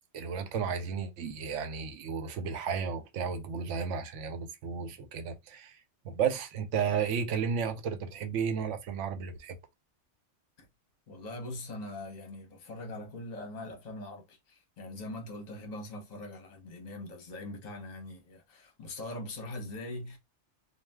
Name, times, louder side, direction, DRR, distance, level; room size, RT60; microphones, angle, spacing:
voice 1, 0.1-5.8 6.0-9.6, right 6 dB, 80° right, 0.9 m, -33 dB
voice 2, 11.1-20.2, left 2 dB, 40° left, 0.8 m, -42 dB
2.6 x 2.2 x 3.3 m
omnidirectional pair, 1.2 m